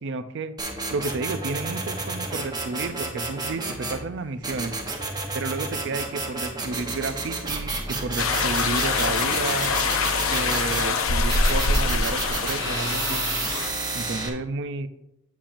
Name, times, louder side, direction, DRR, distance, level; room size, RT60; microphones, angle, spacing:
voice 1, 0.0-0.5 0.9-4.7 5.3-9.7 10.3-13.2 13.9-14.9, right 3 dB, 55° right, 12 dB, 0.5 m, -31 dB
sound 1, 0.6-4.0 4.4-10.9 11.3-14.3, right 2 dB, 20° right, 1.0 m, -31 dB
sound 2, 8.2-13.7, left 4 dB, 75° left, 0.7 m, -24 dB
8.5 x 7.3 x 2.6 m, 0.89 s
head